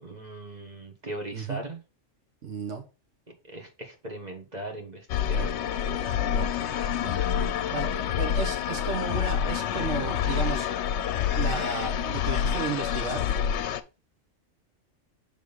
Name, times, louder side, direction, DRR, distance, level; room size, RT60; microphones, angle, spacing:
voice 1, 0.0-1.8 3.4-6.9, right 1 dB, 35° right, 1.4 m, -40 dB
voice 2, 2.4-2.8 5.3-5.5 6.3-6.5 7.0-7.2 7.7-10.7 11.3-13.2, right 5 dB, 80° right, 1.3 m, -34 dB
sound 1, 5.1-13.8, left 8 dB, 70° left, 0.9 m, -27 dB
6.3 x 3.6 x 5.2 m
omnidirectional pair, 1.2 m